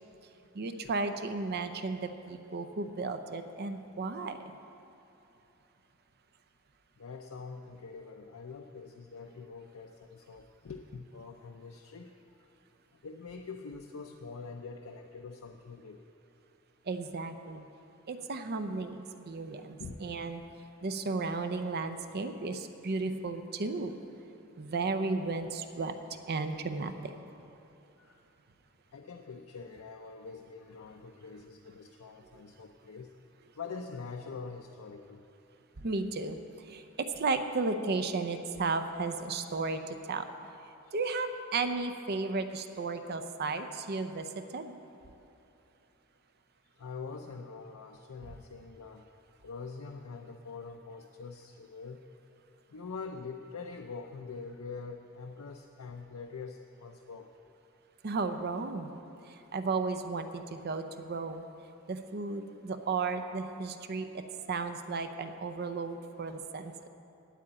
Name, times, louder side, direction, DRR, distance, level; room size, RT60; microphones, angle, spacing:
voice 1, 0.5-4.4 16.9-17.7 18.1-20.4 20.8-24.0 24.6-25.9 26.3-27.1 35.8-40.3 40.9-44.7 58.0-61.5 61.9-66.7, right 3 dB, 50° right, 8 dB, 0.6 m, -34 dB
voice 2, 7.0-12.5 12.9-16.0 19.8-19.9 28.0-28.2 28.9-33.1 33.6-35.3 40.8-40.9 46.8-49.1 49.4-52.0 52.7-57.3, left 4 dB, 80° left, 3 dB, 0.5 m, -44 dB
8.9 x 8.4 x 8.6 m, 3.0 s
head